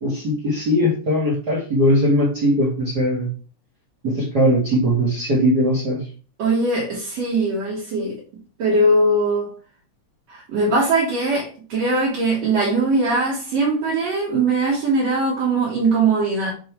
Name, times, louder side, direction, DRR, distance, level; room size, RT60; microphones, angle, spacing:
voice 1, 0.0-3.3 4.0-6.0, equal, 40° right, -4 dB, 2.0 m, -19 dB
voice 2, 6.4-8.2 8.6-9.5 10.3-16.5, right 2 dB, 65° right, -4 dB, 2.8 m, -20 dB
7.0 x 3.8 x 4.6 m, 0.38 s
omnidirectional pair, 3.3 m